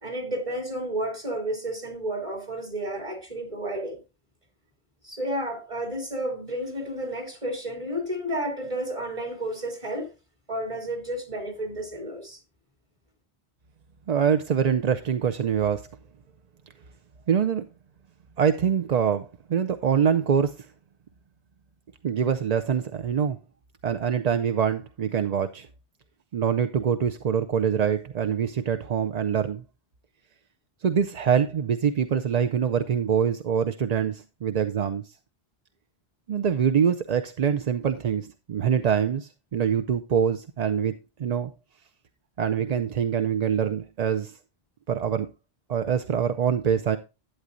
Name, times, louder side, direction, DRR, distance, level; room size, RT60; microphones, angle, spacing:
voice 1, 0.0-4.0 5.0-10.1 10.5-12.4, right 1 dB, 30° right, 3.1 m, -31 dB
voice 2, 14.1-15.9 17.3-17.6 18.4-20.5 22.0-23.4 23.8-25.7 26.3-29.6 30.8-35.0 36.3-40.9 41.2-41.5 42.4-44.3 44.9-45.3 45.7-47.0, right 7 dB, 50° right, 0.6 m, -24 dB
11.5 x 8.9 x 2.5 m
omnidirectional pair, 1.1 m